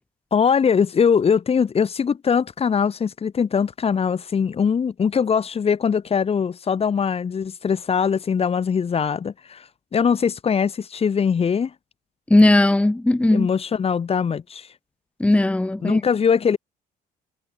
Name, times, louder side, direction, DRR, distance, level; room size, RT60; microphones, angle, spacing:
voice 1, 0.3-11.7 13.3-14.7 15.8-16.6, left 6 dB, 35° left, 3.7 m, -21 dB
voice 2, 12.3-13.5 15.2-16.0, left 2 dB, 5° left, 1.1 m, -17 dB
cardioid pair, 110°, 17 cm